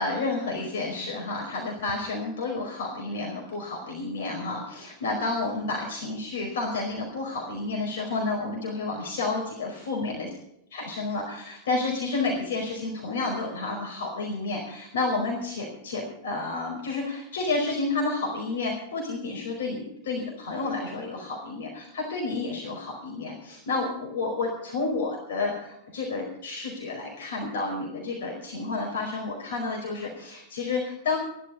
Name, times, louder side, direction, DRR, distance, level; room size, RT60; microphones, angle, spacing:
voice 1, 0.0-10.3 10.7-31.2, left 3 dB, 60° left, -1 dB, 4.8 m, -30 dB
17.0 x 12.0 x 5.4 m, 0.77 s
figure-of-eight pair, 90°, 0 cm